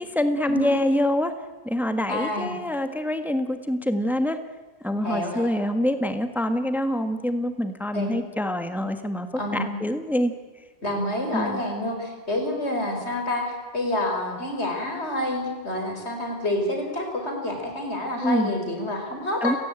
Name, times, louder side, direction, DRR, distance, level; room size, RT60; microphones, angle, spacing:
voice 1, 0.0-1.3 1.6-4.4 4.8-9.3 9.5-10.3 11.3-11.6 18.2-18.5 19.4-19.6, left 1 dB, ahead, 8 dB, 1.5 m, -25 dB
voice 2, 2.1-2.5 5.0-5.7 7.9-8.2 9.4-9.8 10.8-19.6, left 1 dB, 85° left, 3 dB, 5.3 m, -28 dB
30.0 x 17.0 x 8.9 m, 1.4 s
omnidirectional pair, 1.1 m